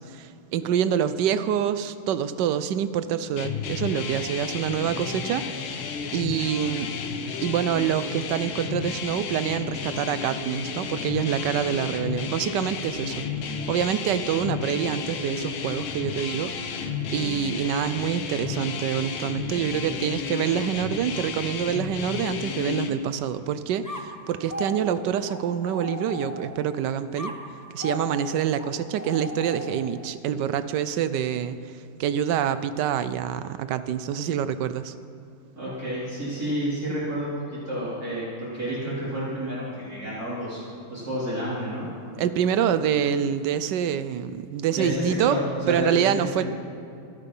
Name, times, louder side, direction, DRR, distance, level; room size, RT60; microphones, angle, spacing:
voice 1, 0.0-7.0 7.4-13.2 13.7-16.5 16.8-27.3 27.7-31.6 32.0-34.9 42.2-45.4 45.7-46.4, right 9 dB, 70° right, 13 dB, 1.1 m, -26 dB
sound 1, 3.4-22.9, left 6 dB, 85° left, 1.9 m, -32 dB
sound 2, 23.8-26.7 27.2-30.0, left 1 dB, 15° left, 0.8 m, -37 dB
voice 2, 35.6-40.6 40.9-41.9 44.7-46.4, equal, 45° right, -10 dB, 4.2 m, -30 dB
24.5 x 8.4 x 5.5 m, 2.6 s
omnidirectional pair, 2.2 m